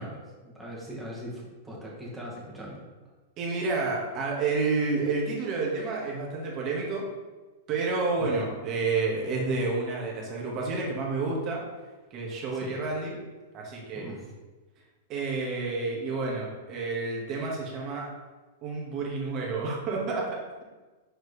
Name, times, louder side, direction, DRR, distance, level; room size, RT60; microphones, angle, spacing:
voice 1, 0.0-2.8 8.2-8.3 12.5-12.8 13.9-14.3, equal, 5° right, -5 dB, 1.9 m, -40 dB
voice 2, 3.4-7.1 7.7-11.6 12.1-13.2 13.5-14.1 15.1-18.1 18.6-20.6, right 3 dB, 35° right, -2 dB, 1.7 m, -30 dB
6.5 x 4.6 x 3.4 m, 1.3 s
hypercardioid pair, 130°, 0 cm